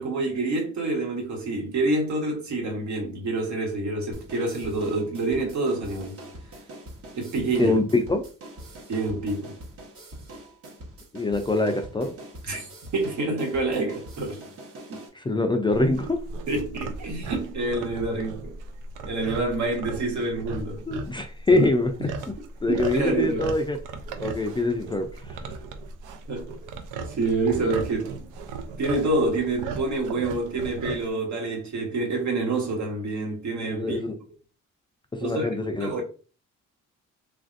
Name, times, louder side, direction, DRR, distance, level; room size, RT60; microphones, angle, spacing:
voice 1, 0.0-6.2 7.1-7.8 8.9-9.6 12.4-14.4 14.9-15.1 16.5-18.5 19.0-20.8 21.5-21.7 22.0-22.1 22.7-23.5 26.3-26.5 27.2-28.3 28.8-34.0 35.2-36.0, right 2 dB, 70° right, 1.2 m, -27 dB
sound 1, 4.1-15.1, right 1 dB, 50° right, 1.0 m, -44 dB
voice 2, 7.6-8.2 11.1-12.1 15.2-16.2 20.9-22.3 22.6-23.8 24.2-25.1 33.7-34.1 35.2-36.0, left 2 dB, 15° left, 0.4 m, -24 dB
sound 2, 15.7-31.1, right 4 dB, 90° right, 0.5 m, -37 dB
3.2 x 2.5 x 2.5 m
cardioid pair, 90°, 30 cm